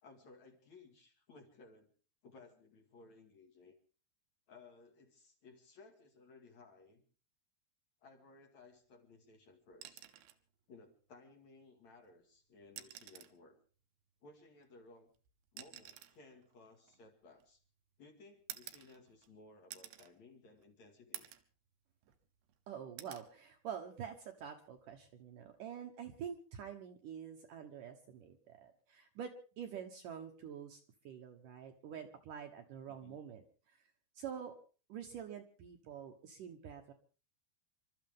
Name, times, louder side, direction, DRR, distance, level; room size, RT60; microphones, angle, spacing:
voice 1, 0.0-1.9 2.2-3.7 4.5-7.0 8.0-10.1 10.7-13.6 14.2-15.1 15.5-17.6 18.0-21.3 32.9-33.2, left 3 dB, 50° left, 3 dB, 3.0 m, -60 dB
sound 1, 9.7-10.4 11.9-12.0 12.6-13.4 14.6-17.7 18.5-19.3 19.7-20.1 20.6-20.7 21.1-21.5 22.0-22.6 23.0-23.3 24.8-25.0, right 13 dB, 85° right, 3.2 m, -52 dB
voice 2, 22.7-29.3 29.6-33.9 34.2-34.5 34.9-36.9, right 8 dB, 65° right, 4 dB, 2.3 m, -47 dB
28.5 x 13.0 x 3.6 m, 0.38 s
omnidirectional pair, 4.9 m